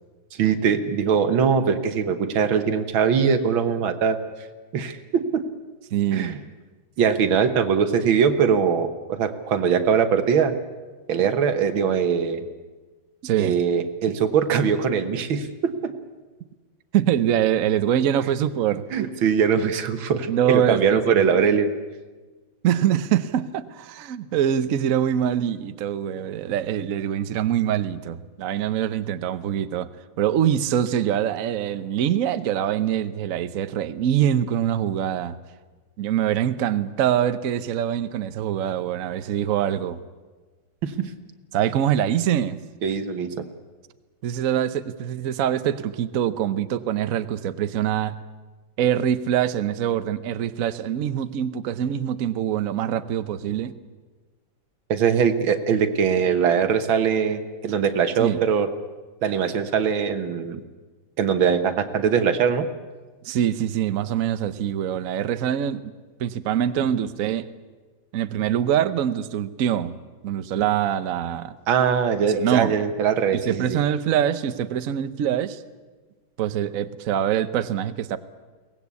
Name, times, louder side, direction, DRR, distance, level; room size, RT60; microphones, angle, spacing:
voice 1, 0.3-4.2 4.7-5.4 6.1-6.4 7.0-10.6 11.1-12.5 13.4-15.9 18.9-21.7 40.8-41.1 42.8-43.4 54.9-58.7 59.2-60.6 61.2-62.7 71.7-73.8, right 7 dB, 90° right, 9 dB, 2.1 m, -21 dB
voice 2, 5.9-6.4 13.2-13.6 16.9-18.8 20.3-21.4 22.6-29.9 30.2-35.4 36.0-40.0 41.5-42.6 44.2-48.2 48.8-53.8 58.2-58.4 63.2-65.9 66.2-67.5 68.1-70.0 70.2-71.5 72.3-72.7 73.3-75.6 76.4-78.2, right 10 dB, 55° right, 12 dB, 1.0 m, -24 dB
23.0 x 18.5 x 8.3 m, 1.3 s
omnidirectional pair, 2.1 m